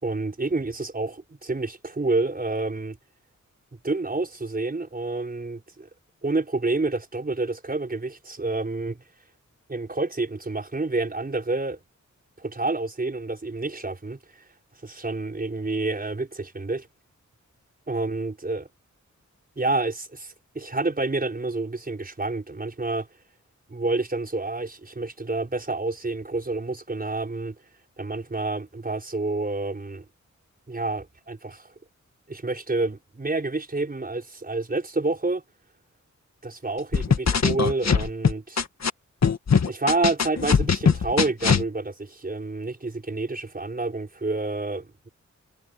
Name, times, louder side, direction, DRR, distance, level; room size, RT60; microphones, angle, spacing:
voice 1, 0.0-3.0 3.8-5.9 6.2-9.0 9.7-11.8 12.4-14.5 14.8-16.9 17.9-18.7 19.6-23.1 23.7-27.6 28.0-30.0 30.7-31.7 32.3-35.4 36.4-38.6 39.7-45.1, right 3 dB, 30° right, 5.5 m, -28 dB
sound 1, 36.9-38.9 39.2-41.6, left 6 dB, 60° left, 1.9 m, -21 dB
wide cardioid pair, 150°, 30 cm